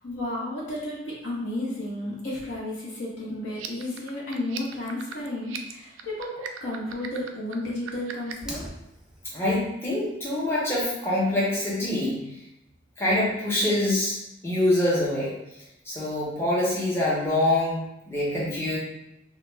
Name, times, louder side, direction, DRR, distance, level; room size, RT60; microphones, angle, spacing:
voice 1, 0.0-8.6, left 1 dB, 65° left, -6 dB, 0.9 m, -32 dB
sound 1, 3.5-8.5, right 8 dB, 85° right, 0.3 m, -39 dB
Fire, 8.3-9.3, right 1 dB, 5° right, 0.3 m, -40 dB
voice 2, 9.3-12.2 13.0-14.2 14.4-15.3 15.8-18.8, left 1 dB, 15° left, -8 dB, 0.7 m, -25 dB
2.3 x 2.2 x 3.2 m, 0.86 s
head